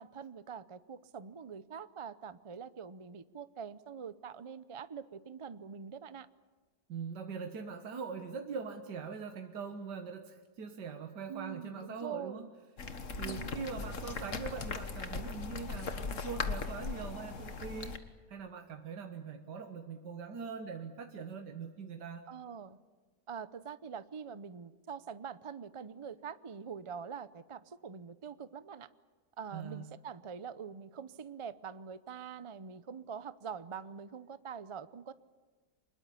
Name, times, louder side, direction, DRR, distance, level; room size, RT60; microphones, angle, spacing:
voice 1, 0.0-6.3 11.3-12.5 13.2-13.5 22.3-22.8 23.3-28.9 29.4-35.1, right 6 dB, 50° right, 14 dB, 0.3 m, -44 dB
voice 2, 6.9-12.5 13.2-18.0 18.3-22.2 29.5-29.8, right 5 dB, 85° right, 5 dB, 1.9 m, -42 dB
sound 1, 12.8-18.0, left 4 dB, 50° left, 1.8 m, -39 dB
25.5 x 21.5 x 8.5 m, 1.4 s
omnidirectional pair, 1.8 m